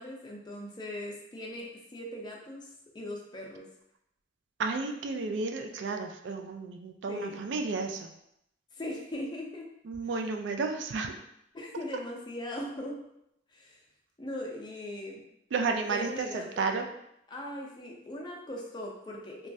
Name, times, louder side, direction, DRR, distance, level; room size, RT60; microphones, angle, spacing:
voice 1, 0.0-2.7 2.9-3.7 7.1-7.4 8.7-9.7 11.5-13.0 13.5-13.8 14.2-15.2 15.8-16.7 17.3-19.5, left 1 dB, 25° left, -1 dB, 0.5 m, -39 dB
voice 2, 4.6-8.1 9.8-11.1 15.5-16.9, right 4 dB, 70° right, 4 dB, 0.3 m, -32 dB
3.0 x 2.3 x 2.6 m, 0.78 s
head